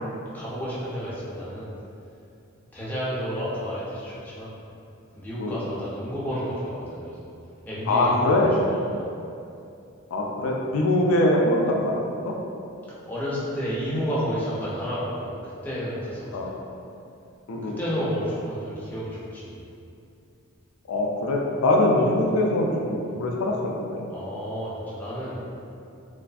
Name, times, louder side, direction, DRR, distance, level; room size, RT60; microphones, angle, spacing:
voice 1, 0.3-1.7 2.7-4.5 5.1-7.3 7.6-9.1 12.9-16.5 17.6-19.6 24.1-25.4, equal, 10° left, -9 dB, 0.4 m, -31 dB
voice 2, 7.9-8.6 10.1-11.9 12.2-12.3 16.3-16.5 17.5-17.8 20.9-24.0, left 1 dB, 75° left, 1 dB, 0.3 m, -23 dB
2.4 x 2.4 x 2.3 m, 2.6 s
head